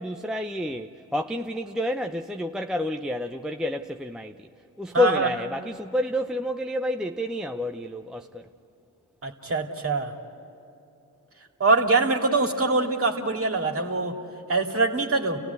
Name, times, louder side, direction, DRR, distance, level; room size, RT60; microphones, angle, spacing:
voice 1, 0.0-4.5 4.8-8.4, left 1 dB, ahead, 0.6 m, -29 dB
voice 2, 4.9-5.3 9.2-10.1 11.6-14.2 14.5-15.4, right 3 dB, 35° right, 2.4 m, -23 dB
29.5 x 16.0 x 8.2 m
supercardioid pair, 45°, 41 cm